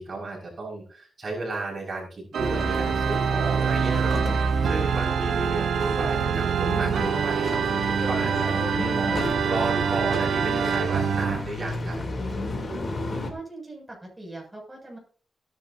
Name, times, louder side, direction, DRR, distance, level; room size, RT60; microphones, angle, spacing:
voice 1, 0.0-12.0, right 2 dB, 45° right, -3 dB, 6.1 m, -34 dB
Organ, 2.3-11.4, right 6 dB, 80° right, 1.0 m, -25 dB
sound 1, 2.4-13.3, left 2 dB, 45° left, 3.4 m, -34 dB
voice 2, 8.7-9.0 13.3-15.0, right 2 dB, 15° right, -1 dB, 7.2 m, -42 dB
17.5 x 11.0 x 2.8 m, 0.41 s
cardioid pair, 100°, 0 cm